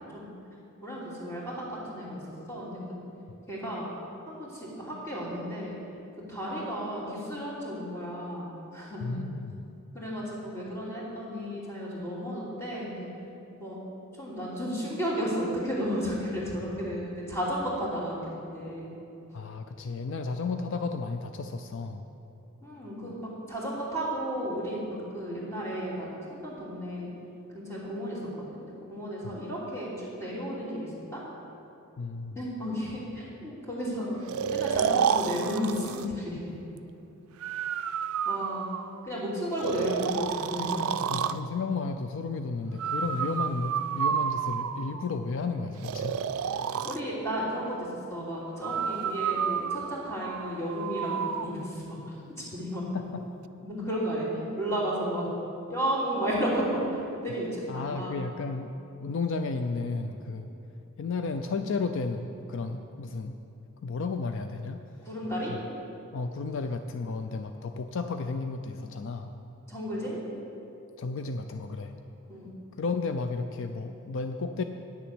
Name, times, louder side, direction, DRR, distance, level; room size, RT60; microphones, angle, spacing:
voice 1, 0.8-2.2 2.5-2.9 3.5-3.9 4.3-5.7 6.3-9.1 9.9-13.1 13.6-13.8 14.2-18.2 18.5-18.9 22.6-27.1 27.5-28.2 28.9-31.2 32.3-34.2 34.5-36.5 38.2-38.7 39.0-40.8 46.8-52.0 52.4-52.8 53.6-55.3 55.7-58.2 65.0-65.5 69.7-70.2 72.3-72.5, equal, 15° left, -7 dB, 3.0 m, -33 dB
voice 2, 9.0-9.6 19.3-22.0 29.2-29.3 32.0-32.4 41.1-46.2 52.9-53.2 57.7-58.7 59.0-60.5 61.0-63.3 63.8-64.8 65.5-65.6 66.1-69.3 71.0-71.9 72.8-74.6, left 4 dB, 60° left, 7 dB, 0.4 m, -33 dB
Breathing, 34.3-36.1 37.4-39.1 39.6-41.4 42.8-45.0 45.8-47.0 48.6-51.5, right 7 dB, 75° right, 0.4 m, -30 dB
9.8 x 7.0 x 7.7 m, 2.8 s
head